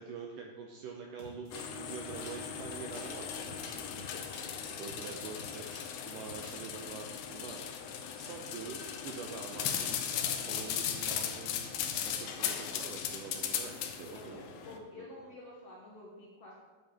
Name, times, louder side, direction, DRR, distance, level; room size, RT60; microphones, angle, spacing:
voice 1, 0.0-3.9 4.8-5.7 6.1-7.6 8.2-10.1 10.4-11.7 12.1-15.1, right 5 dB, 80° right, 1 dB, 2.0 m, -45 dB
sound 1, 1.2-5.9 6.2-6.7, equal, 35° right, 1.1 m, -51 dB
sound 2, 1.5-14.8, left 8 dB, 85° left, 1.7 m, -38 dB
voice 2, 14.1-16.6, left 2 dB, 70° left, -4 dB, 1.4 m, -50 dB
8.8 x 7.6 x 3.6 m, 1.3 s
omnidirectional pair, 4.2 m